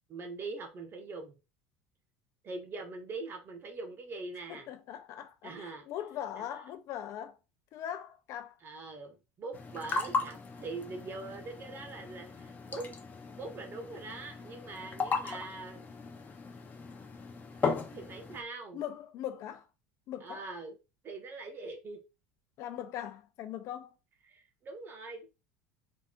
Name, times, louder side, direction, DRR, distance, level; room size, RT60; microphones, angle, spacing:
voice 1, 0.1-1.3 2.4-4.7 5.4-5.9 6.3-6.5 8.6-12.9 13.4-15.8 17.6-18.8 20.2-20.8 21.0-22.0 24.3-25.3, right 3 dB, 40° right, 1.2 m, -42 dB
voice 2, 4.5-7.4 7.7-8.6 18.7-19.7 20.1-20.5 22.6-23.9, left 10 dB, 60° left, 0.6 m, -40 dB
sound 1, 9.5-18.4, left 4 dB, 30° left, 0.8 m, -37 dB
3.9 x 3.5 x 2.4 m
supercardioid pair, 95°, 6 cm